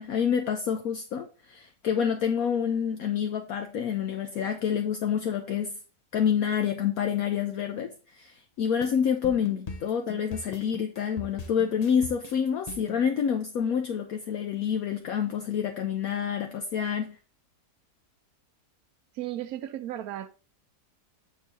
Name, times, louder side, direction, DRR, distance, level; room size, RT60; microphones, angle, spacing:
voice 1, 0.0-5.8 6.1-17.2, left 7 dB, 70° left, 1.0 m, -28 dB
sound 1, 8.8-13.0, left 4 dB, 35° left, 0.7 m, -40 dB
voice 2, 19.1-20.3, right 13 dB, 70° right, 1.0 m, -35 dB
6.6 x 3.7 x 4.2 m
omnidirectional pair, 1.8 m